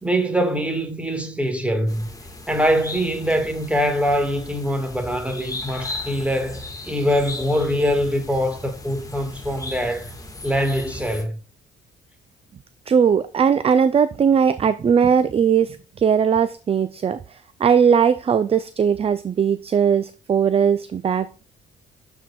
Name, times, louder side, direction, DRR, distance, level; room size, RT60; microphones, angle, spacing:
voice 1, 0.0-2.1 2.5-10.1 10.4-11.4, equal, 5° right, 1.6 m, -23 dB
sound 1, 1.9-11.2, left 2 dB, 15° left, 1.6 m, -37 dB
voice 2, 12.9-17.2 17.6-21.4, right 7 dB, 30° right, 0.4 m, -19 dB
12.0 x 4.5 x 2.3 m
cardioid pair, 90°, 20 cm